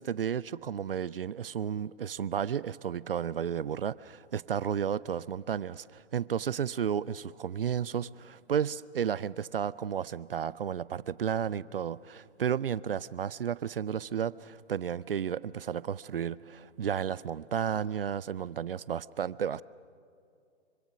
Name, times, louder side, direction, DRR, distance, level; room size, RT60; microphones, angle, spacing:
voice 1, 0.0-19.6, right 8 dB, 55° right, 21 dB, 0.5 m, -33 dB
25.5 x 24.0 x 6.1 m, 2.4 s
figure-of-eight pair, 140°, 35 cm